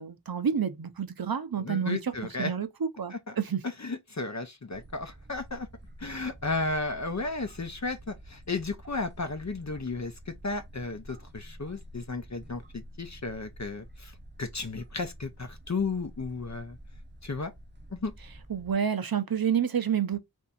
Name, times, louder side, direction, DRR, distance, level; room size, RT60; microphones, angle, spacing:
voice 1, 0.0-2.1 2.4-3.6 18.5-20.2, right 7 dB, 60° right, 0.7 m, -29 dB
voice 2, 1.6-2.5 3.1-3.3 3.8-5.7 6.0-16.8 17.2-17.5 17.9-18.1, left 3 dB, 45° left, 0.7 m, -34 dB
sound 1, 4.7-18.7, equal, 25° right, 0.7 m, -49 dB
3.4 x 2.7 x 4.1 m
wide cardioid pair, 50°, 40 cm